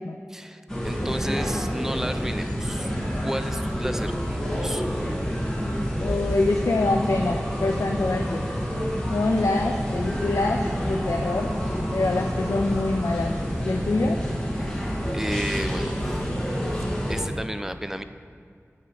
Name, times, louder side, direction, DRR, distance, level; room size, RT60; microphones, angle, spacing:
voice 1, 0.3-3.0 3.2-4.9 14.6-14.8 15.1-16.0 17.1-18.0, equal, 10° right, 9 dB, 0.3 m, -32 dB
sound 1, 0.7-17.3, equal, 10° left, 1.3 m, -28 dB
voice 2, 6.0-8.4 9.1-11.5 11.9-14.2, left 2 dB, 90° left, 3 dB, 0.4 m, -25 dB
8.6 x 3.1 x 5.5 m, 2.3 s
wide cardioid pair, 55°, 5 cm